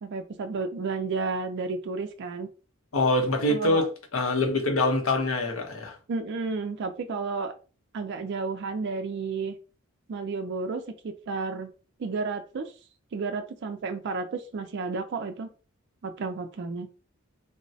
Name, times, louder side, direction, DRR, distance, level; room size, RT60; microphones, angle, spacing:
voice 1, 0.0-2.5 3.5-3.9 6.1-7.5 7.9-9.6 10.1-11.7 12.0-12.7 13.1-15.5 16.0-16.9, right 4 dB, 55° right, 0.4 m, -32 dB
voice 2, 2.9-6.0, left 2 dB, 75° left, 0.8 m, -24 dB
3.8 x 2.1 x 2.6 m
head